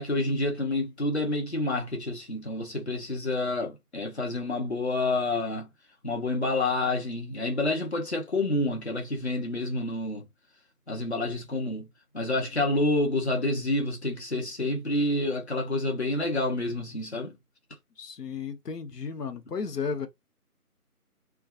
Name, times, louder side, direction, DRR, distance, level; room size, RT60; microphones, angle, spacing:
voice 1, 0.0-5.7 6.0-10.3 10.9-11.9 12.1-17.4, left 2 dB, 45° left, 0.8 m, -28 dB
voice 2, 18.0-20.1, left 5 dB, 90° left, 0.7 m, -34 dB
2.5 x 2.3 x 2.3 m
figure-of-eight pair, 170°, 46 cm